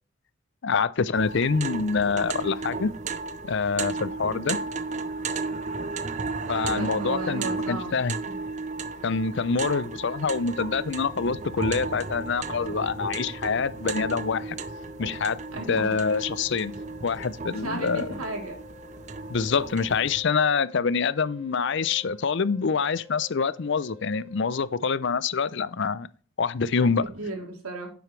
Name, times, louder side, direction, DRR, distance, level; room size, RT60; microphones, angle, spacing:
voice 1, 0.6-2.9 3.5-4.6 6.5-8.2 9.0-14.6 15.0-15.4 15.7-16.7 17.0-18.1 19.3-26.1 26.4-27.0, left 5 dB, 55° left, 0.5 m, -26 dB
sound 1, 1.1-20.2, right 4 dB, 35° right, 0.5 m, -34 dB
voice 2, 6.6-8.0 8.3-8.4 9.6-9.7 15.5-16.0 17.5-18.6 26.8-27.9, right 2 dB, 90° right, 3.3 m, -35 dB
sound 2, 10.3-24.6, left 4 dB, 10° right, 1.1 m, -50 dB
10.0 x 7.7 x 3.2 m
head